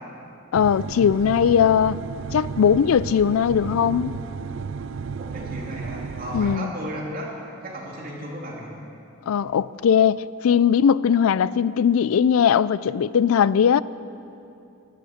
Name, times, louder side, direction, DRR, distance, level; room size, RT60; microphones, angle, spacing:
voice 1, 0.5-2.0 2.3-4.1 6.3-6.7 9.3-13.8, left 7 dB, 90° left, 0.4 m, -19 dB
sound 1, 0.5-6.6, right 5 dB, 65° right, 0.4 m, -33 dB
voice 2, 5.2-7.3 7.6-8.8, equal, 45° right, 2.8 m, -34 dB
15.0 x 12.0 x 6.5 m
head